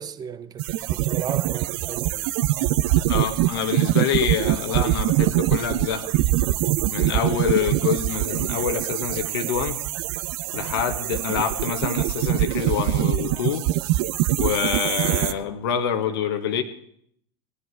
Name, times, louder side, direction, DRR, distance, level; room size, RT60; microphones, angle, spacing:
voice 1, 0.0-2.3, right 8 dB, 30° right, 0.9 m, -35 dB
sound 1, 0.6-15.3, right 15 dB, 55° right, 0.6 m, -24 dB
voice 2, 3.1-6.1 6.9-9.8 10.5-13.6 14.4-16.6, left 8 dB, 65° left, 1.3 m, -26 dB
19.0 x 10.0 x 4.6 m
figure-of-eight pair, 80°, 13 cm